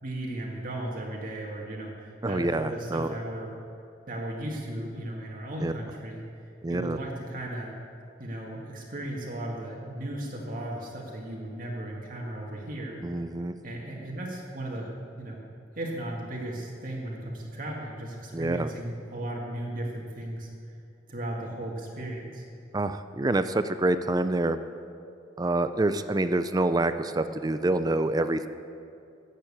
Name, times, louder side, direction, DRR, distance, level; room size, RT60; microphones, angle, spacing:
voice 1, 0.0-3.5 4.1-6.2 6.7-7.7 8.2-13.0 13.6-14.9 15.2-15.4 15.8-20.5 21.1-22.4, right 1 dB, 50° right, -2 dB, 1.9 m, -36 dB
voice 2, 2.2-3.1 5.6-5.7 6.6-7.0 13.0-13.5 18.3-18.7 22.7-24.6 25.4-28.5, right 2 dB, 20° right, 11 dB, 0.4 m, -27 dB
14.0 x 7.6 x 8.6 m, 2.5 s
head